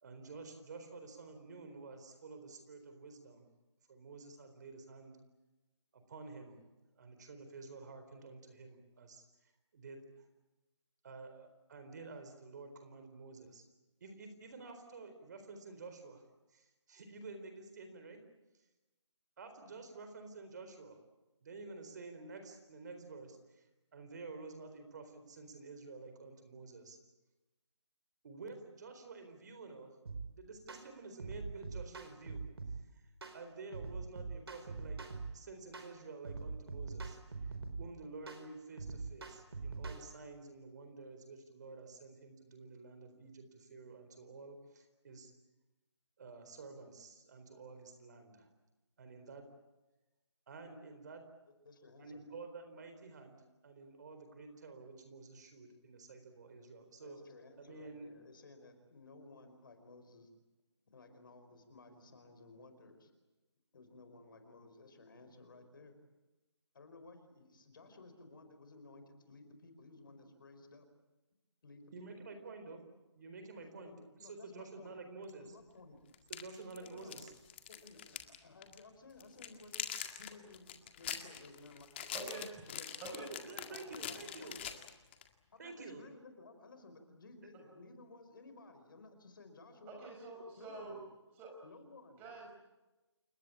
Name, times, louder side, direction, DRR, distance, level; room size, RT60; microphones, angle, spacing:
voice 1, 0.0-3.5 3.9-5.2 5.9-6.6 7.0-10.2 11.0-13.6 14.0-16.2 16.5-18.2 19.4-21.0 21.4-23.7 23.9-27.0 28.2-30.0 30.4-32.4 32.7-33.0 33.3-35.0 35.3-37.2 37.4-45.3 46.2-48.5 49.0-49.5 50.5-51.2 52.0-57.2 57.6-58.1 71.9-72.8 73.1-73.9 74.2-75.6 76.3-77.3 83.3-84.6 85.6-86.0, right 3 dB, 40° right, 7 dB, 4.1 m, -50 dB
sound 1, 30.1-30.3 30.7-30.9 31.2-32.8 33.2-33.4 33.7-35.3 35.7-35.9 36.2-37.9 38.3-38.4 38.8-40.0, right 4 dB, 60° right, 4.7 m, -43 dB
voice 2, 51.5-52.2 56.9-60.3 60.9-63.1 63.7-65.9 66.7-70.9 71.6-72.1 73.6-75.0 75.4-76.0 76.8-77.2 77.7-79.9 80.2-82.3 82.7-84.7 85.5-90.0 90.6-91.0 91.6-92.3, left 3 dB, 45° left, 8 dB, 4.8 m, -56 dB
sound 2, 75.3-75.4 76.1-78.4 78.6-78.8 79.2-85.3, left 9 dB, 25° left, 1.9 m, -44 dB
voice 3, 82.1-82.6 83.0-83.3 87.7-87.8 89.8-91.0 91.3-91.5 92.2-92.5, right 3 dB, 10° right, 0 dB, 5.6 m, -46 dB
29.0 x 20.0 x 8.8 m, 1.1 s
figure-of-eight pair, 160°, 15 cm